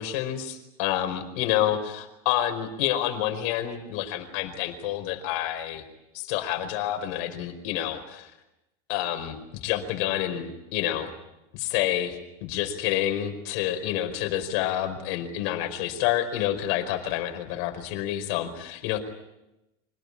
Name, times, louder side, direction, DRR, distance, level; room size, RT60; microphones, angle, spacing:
voice 1, 0.0-5.8 6.1-8.3 8.9-11.1 11.5-19.0, left 12 dB, 65° left, 6 dB, 4.8 m, -28 dB
26.0 x 19.0 x 9.9 m, 0.94 s
supercardioid pair, 150°, 14 cm